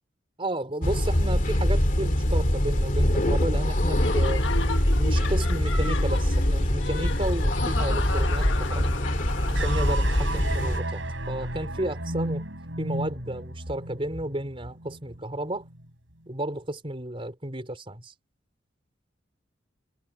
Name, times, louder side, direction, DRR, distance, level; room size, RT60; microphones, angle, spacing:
voice 1, 0.4-4.5 4.9-8.9 9.5-12.4 12.8-15.7 16.3-18.1, right 1 dB, 30° right, 4.8 m, -33 dB
sound 1, 0.8-10.8, left 1 dB, 45° left, 2.5 m, -24 dB
Laughter, 4.0-10.3, left 3 dB, 75° left, 1.6 m, -35 dB
sound 2, 9.5-15.9, right 1 dB, 80° right, 6.3 m, -34 dB
head